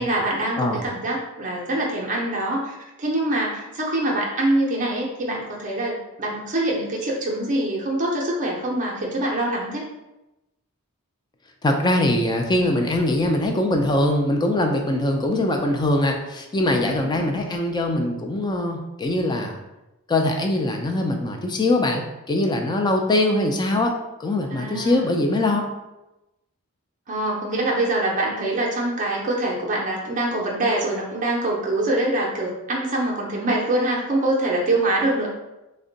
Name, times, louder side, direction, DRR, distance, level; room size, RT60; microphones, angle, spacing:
voice 1, 0.0-9.8 16.8-17.4 24.5-25.2 27.1-35.3, right 1 dB, 35° right, -2 dB, 0.5 m, -24 dB
voice 2, 11.6-19.6 20.1-23.9 24.2-25.6, left 1 dB, 20° left, 3 dB, 0.4 m, -22 dB
3.5 x 2.1 x 3.8 m, 0.97 s
head